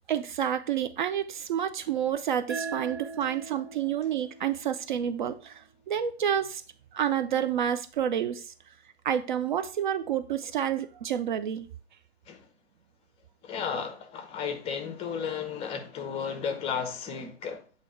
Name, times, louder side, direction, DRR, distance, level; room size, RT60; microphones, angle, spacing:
voice 1, 0.1-6.6 6.9-8.5 9.0-11.7, right 9 dB, 50° right, 0.4 m, -29 dB
sound 1, 2.5-5.7, right 4 dB, 75° right, 1.2 m, -40 dB
voice 2, 13.4-17.6, left 6 dB, 20° left, 0.7 m, -34 dB
7.5 x 2.9 x 4.4 m
figure-of-eight pair, 105°, 32 cm